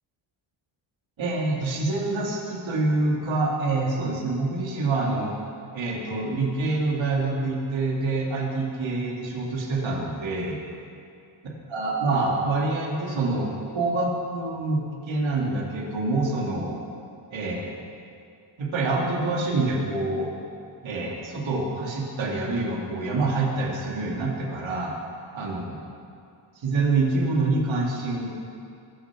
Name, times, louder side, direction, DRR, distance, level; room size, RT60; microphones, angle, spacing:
voice 1, 1.2-5.3 5.7-10.6 11.7-14.8 15.1-16.8 17.3-17.8 18.6-20.3 20.8-24.9 25.3-25.8 26.6-28.3, right 3 dB, 65° right, -2 dB, 2.5 m, -26 dB
21.5 x 7.2 x 6.1 m, 2.5 s
wide cardioid pair, 135°, 49 cm